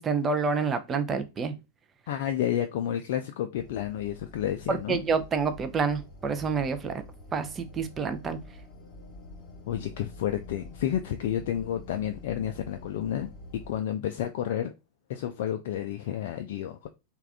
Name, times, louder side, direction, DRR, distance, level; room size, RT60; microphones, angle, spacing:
voice 1, 0.0-1.5 4.7-7.0 7.3-8.4, right 5 dB, 20° right, 0.5 m, -28 dB
voice 2, 2.1-5.0 9.7-14.7 15.1-16.9, left 10 dB, 55° left, 0.3 m, -31 dB
sound 1, 3.5-13.8, left 1 dB, 30° left, 1.1 m, -47 dB
3.4 x 2.4 x 3.3 m
figure-of-eight pair, 90°, 0 cm